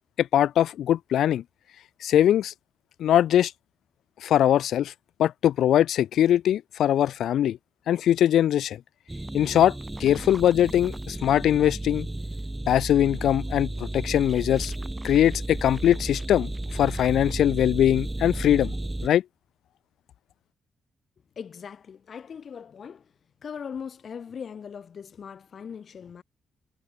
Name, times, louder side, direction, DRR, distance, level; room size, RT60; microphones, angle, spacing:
voice 1, 0.2-1.4 2.0-2.5 3.0-3.5 4.2-4.9 5.2-7.6 7.9-8.8 9.3-9.7 10.0-12.1 12.7-14.7 15.0-18.7 19.0-19.2, left 11 dB, 80° left, 1.6 m, -21 dB
sound 1, 9.1-19.1, right 1 dB, 10° right, 2.4 m, -33 dB
voice 2, 21.4-23.1 23.4-26.2, left 7 dB, 50° left, 6.1 m, -39 dB
cardioid pair, 115°, 0 cm